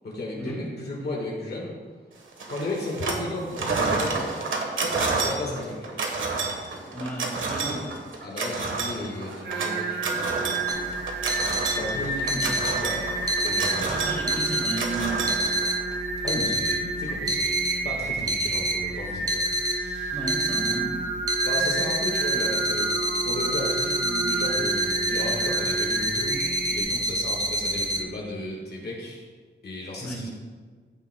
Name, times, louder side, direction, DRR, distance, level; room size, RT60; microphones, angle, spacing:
voice 1, 0.0-1.7 2.5-4.2 5.1-6.0 8.2-10.5 10.9-11.2 11.7-13.9 16.2-20.2 21.4-22.9 23.2-26.4 26.7-29.3 29.6-30.3, left 1 dB, 55° left, -3 dB, 1.5 m, -34 dB
sound 1, 2.4-3.3 3.5-15.9, right 3 dB, 85° right, 1.2 m, -29 dB
voice 2, 6.9-7.9 13.8-15.6 20.1-21.0 30.0-30.3, right 1 dB, 10° left, -5 dB, 2.3 m, -34 dB
Singing, 9.4-26.8, right 4 dB, 65° right, 1.2 m, -30 dB
sound 2, 10.7-28.0, equal, 20° right, 0.7 m, -28 dB
14.5 x 6.9 x 2.2 m, 1.5 s
wide cardioid pair, 160°, 20 cm